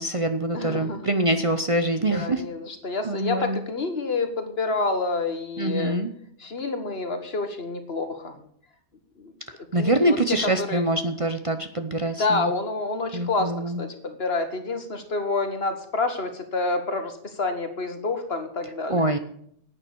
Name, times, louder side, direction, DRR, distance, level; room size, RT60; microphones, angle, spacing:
voice 1, 0.0-2.4 3.0-3.6 5.6-6.1 9.7-12.5 13.1-13.8 18.9-19.2, right 1 dB, 30° right, 7 dB, 0.7 m, -24 dB
voice 2, 0.5-1.1 2.1-6.0 6.4-8.4 9.2-9.3 9.8-10.2 10.6-10.8 12.2-13.5 13.8-19.1, left 3 dB, 55° left, 7 dB, 1.8 m, -28 dB
10.5 x 8.9 x 6.9 m, 0.66 s
omnidirectional pair, 1.2 m